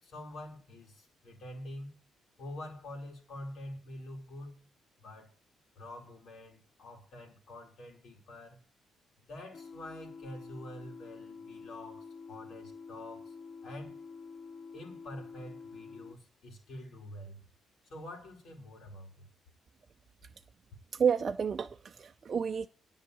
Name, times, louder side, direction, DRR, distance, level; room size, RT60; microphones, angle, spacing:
voice 1, 0.0-1.9 2.4-4.7 5.0-5.3 5.7-8.6 9.2-13.3 13.6-14.0 14.7-17.4 17.9-19.2, left 1 dB, 65° left, 4.6 m, -46 dB
sound 1, 9.5-16.2, left 5 dB, 50° left, 0.5 m, -48 dB
voice 2, 20.9-22.7, right 7 dB, 45° right, 0.6 m, -30 dB
10.5 x 5.7 x 8.5 m
cardioid pair, 90°, 0 cm